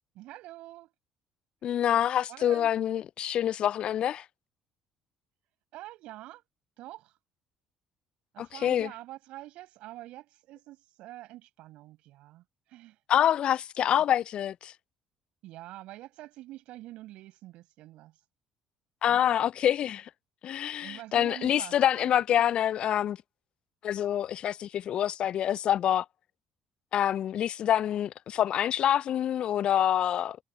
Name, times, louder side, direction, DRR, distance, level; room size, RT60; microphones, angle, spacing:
voice 1, 0.1-0.9 2.3-2.7 5.7-6.4 6.8-7.2 8.3-13.0 13.8-13.9 15.4-18.1 19.1-19.3 20.8-22.1, right 16 dB, 65° right, 5.7 m, -46 dB
voice 2, 1.6-4.3 8.4-8.9 13.1-14.7 19.0-20.1 20.4-23.2 23.8-26.1 26.9-30.4, left 10 dB, 50° left, 0.4 m, -26 dB
hypercardioid pair, 50°, 2 cm